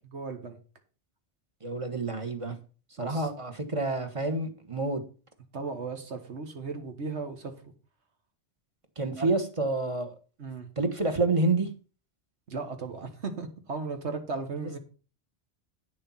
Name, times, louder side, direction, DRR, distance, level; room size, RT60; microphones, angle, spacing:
voice 1, 0.1-0.6 3.0-3.3 5.5-7.5 9.1-9.3 10.4-10.7 12.5-14.8, right 4 dB, 75° right, 1.8 m, -36 dB
voice 2, 1.6-2.5 3.0-5.0 9.0-10.1 10.8-11.7 14.6-14.7, right 2 dB, 30° right, 1.3 m, -28 dB
9.2 x 6.7 x 5.7 m
omnidirectional pair, 1.2 m